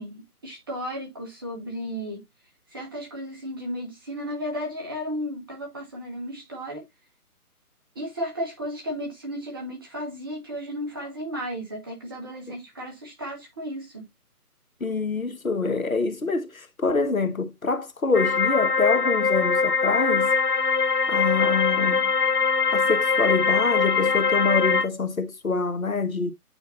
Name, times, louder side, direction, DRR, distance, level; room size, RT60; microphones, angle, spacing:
voice 1, 0.0-2.2 2.7-6.8 7.9-14.1, equal, 15° right, 1.2 m, -34 dB
voice 2, 14.8-20.3 21.1-22.1 22.7-26.3, left 4 dB, 60° left, 1.5 m, -25 dB
sound 1, 18.1-24.9, left 5 dB, 80° left, 1.0 m, -22 dB
8.8 x 4.9 x 2.6 m
figure-of-eight pair, 150°, 46 cm